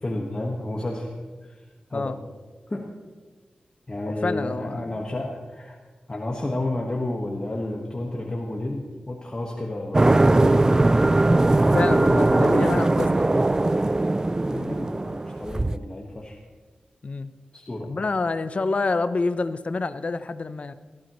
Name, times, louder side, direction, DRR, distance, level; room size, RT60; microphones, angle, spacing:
voice 1, 0.0-1.1 1.4-1.6 1.9-2.2 2.7-2.9 3.9-5.8 6.1-10.8 12.1-12.8 14.5-16.4 17.5-17.9, left 1 dB, 30° left, -1 dB, 1.5 m, -31 dB
voice 2, 4.2-4.9 11.7-13.3 17.0-17.3 17.8-20.7, left 3 dB, 50° left, 12 dB, 0.7 m, -27 dB
sound 1, 9.9-15.8, right 2 dB, 25° right, 0.3 m, -20 dB
17.5 x 14.5 x 3.1 m, 1.4 s
wide cardioid pair, 85°, 3 cm